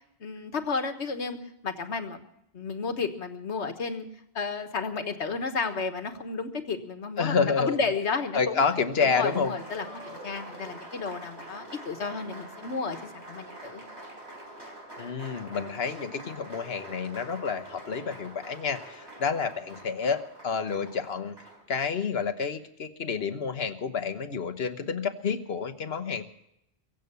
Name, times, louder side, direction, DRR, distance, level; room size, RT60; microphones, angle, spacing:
voice 1, 0.2-1.4 1.6-2.2 2.5-4.1 4.3-8.6 9.0-13.8, left 4 dB, 90° left, 8 dB, 1.6 m, -32 dB
voice 2, 7.2-7.8 8.3-9.5 15.0-21.3 21.7-26.2, left 5 dB, 65° left, 9 dB, 1.3 m, -29 dB
Applause, 8.7-21.9, right 1 dB, 90° right, 4.2 m, -45 dB
23.0 x 7.9 x 6.8 m, 0.81 s
omnidirectional pair, 1.1 m